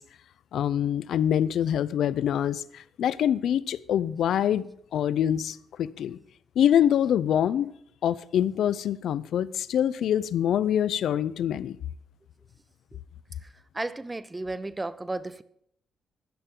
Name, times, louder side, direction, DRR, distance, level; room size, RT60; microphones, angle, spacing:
voice 1, 0.5-4.7 4.9-6.2 6.6-7.7 8.0-11.8, left 10 dB, 70° left, 0.5 m, -25 dB
voice 2, 13.7-15.4, right 2 dB, 15° right, 0.6 m, -33 dB
15.0 x 11.0 x 3.8 m
cardioid pair, 145°, 0 cm